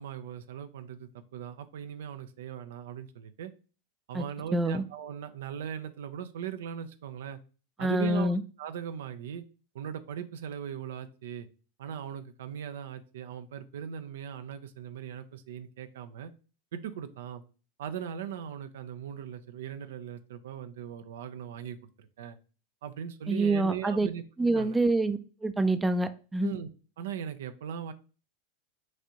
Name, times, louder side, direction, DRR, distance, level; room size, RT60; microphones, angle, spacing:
voice 1, 0.0-3.5 4.1-7.4 7.8-9.4 9.7-11.5 11.8-16.3 16.7-17.4 17.8-22.4 22.8-24.2 24.5-24.8 26.4-26.7 27.0-27.9, right 8 dB, 75° right, 0.4 m, -39 dB
voice 2, 4.5-4.8 7.8-8.4 23.3-24.1 24.4-26.5, right 2 dB, 10° right, 0.4 m, -26 dB
6.1 x 2.5 x 2.8 m
hypercardioid pair, 95°, 0 cm